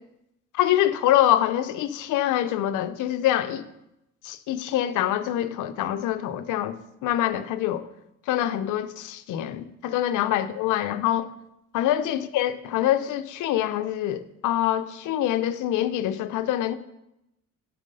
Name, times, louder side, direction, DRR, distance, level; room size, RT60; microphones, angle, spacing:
voice 1, 0.5-3.6 4.2-6.8 7.0-7.8 8.3-11.3 11.7-16.8, left 12 dB, 90° left, 12 dB, 0.6 m, -25 dB
10.5 x 4.1 x 5.4 m, 0.86 s
cardioid pair, 90°, 30 cm